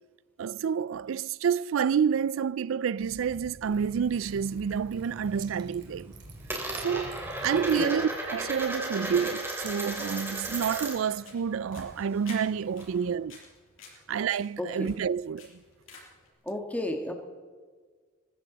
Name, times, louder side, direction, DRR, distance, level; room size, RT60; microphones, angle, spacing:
voice 1, 0.4-6.1 6.8-13.4 14.1-15.5, right 7 dB, 75° right, 0.4 m, -29 dB
Liquid, 3.0-11.3, right 1 dB, 55° right, 3.2 m, -48 dB
Coin (dropping), 3.6-4.8 5.1-5.6 5.9-11.2 11.4-13.1, right 2 dB, 10° right, 3.4 m, -36 dB
sound 1, 10.5-16.3, left 4 dB, 80° left, 6.6 m, -52 dB
voice 2, 14.6-14.9 16.5-17.1, left 1 dB, 10° left, 1.7 m, -32 dB
22.0 x 15.0 x 4.0 m
head